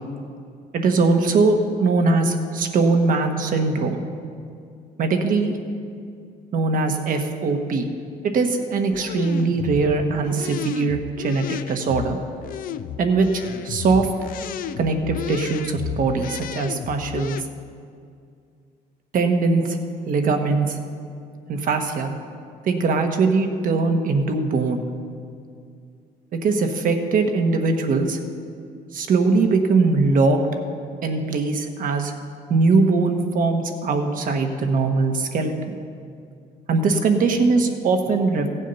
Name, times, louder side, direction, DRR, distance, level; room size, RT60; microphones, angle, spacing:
voice 1, 0.7-4.0 5.0-5.6 6.5-7.9 8.3-12.2 13.0-14.1 14.8-17.4 19.1-19.8 20.1-20.8 21.5-22.1 22.6-24.8 26.3-28.2 28.9-30.5 31.0-32.1 32.5-35.7 36.7-38.5, right 3 dB, 55° right, 5 dB, 1.3 m, -21 dB
sound 1, 8.9-17.4, left 10 dB, 55° left, 0.4 m, -33 dB
16.0 x 7.3 x 5.6 m, 2.3 s
cardioid pair, 110°, 17 cm